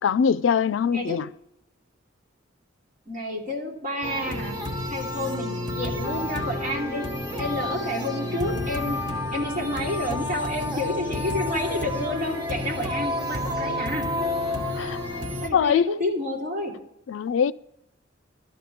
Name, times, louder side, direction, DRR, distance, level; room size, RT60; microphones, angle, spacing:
voice 1, 0.0-1.3 14.8-15.0 15.5-16.0 17.1-17.5, left 7 dB, 75° left, 0.4 m, -22 dB
voice 2, 3.1-4.6 4.9-7.0 7.4-9.0 9.3-14.1 15.4-16.7, left 1 dB, 45° right, 2.9 m, -30 dB
sound 1, 4.0-15.5, left 1 dB, 20° right, 1.3 m, -30 dB
12.5 x 5.1 x 8.5 m
head